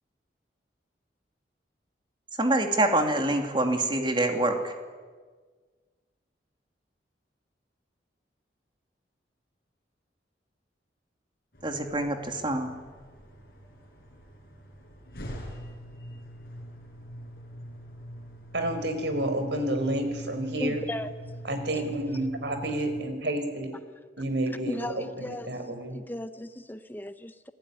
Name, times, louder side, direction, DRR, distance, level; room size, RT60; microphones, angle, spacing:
voice 1, 2.4-4.7 11.6-12.7, right 1 dB, 25° right, 4 dB, 2.7 m, -25 dB
sound 1, 11.5-23.0, equal, 55° left, 7.2 m, -43 dB
voice 2, 18.5-20.8 21.4-23.7 24.2-26.0, right 1 dB, 70° right, 7 dB, 4.6 m, -30 dB
voice 3, 20.6-21.1 21.8-21.9 24.7-25.6 25.9-27.5, left 1 dB, 10° left, 10 dB, 0.7 m, -36 dB
28.0 x 20.0 x 9.9 m, 1.5 s
head